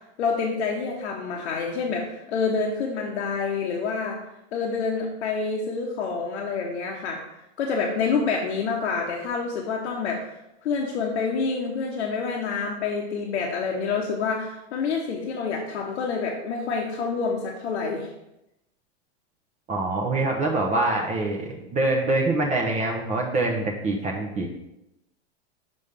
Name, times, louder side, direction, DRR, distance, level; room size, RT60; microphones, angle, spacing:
voice 1, 0.2-4.2 4.5-7.2 7.6-10.3 10.6-18.1, left 5 dB, 85° left, -1 dB, 0.9 m, -27 dB
voice 2, 19.7-24.5, right 2 dB, 20° right, 0 dB, 0.7 m, -25 dB
5.4 x 5.3 x 3.3 m, 0.89 s
hypercardioid pair, 125°, 33 cm